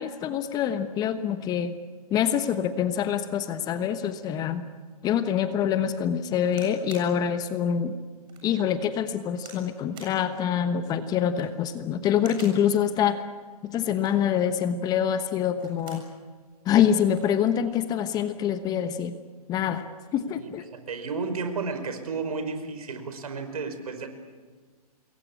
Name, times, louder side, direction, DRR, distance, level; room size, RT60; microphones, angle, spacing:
voice 1, 0.0-1.7 2.1-4.6 5.0-7.9 8.4-13.2 13.6-16.0 16.7-19.1 19.5-19.9 20.1-20.6, left 9 dB, 20° left, 11 dB, 1.1 m, -25 dB
sound 1, 6.5-7.1 7.7-7.8 8.3-8.5 9.4-9.7 9.9-10.2 11.2-11.6 12.2-12.6 13.8-14.3 15.4-16.1 16.5-16.6 16.8-17.3 18.2-18.4, right 5 dB, 25° right, 7.4 m, -48 dB
voice 2, 20.9-24.1, right 4 dB, 70° right, 8 dB, 5.2 m, -32 dB
27.0 x 22.0 x 8.5 m, 1.5 s
hypercardioid pair, 135°, 20 cm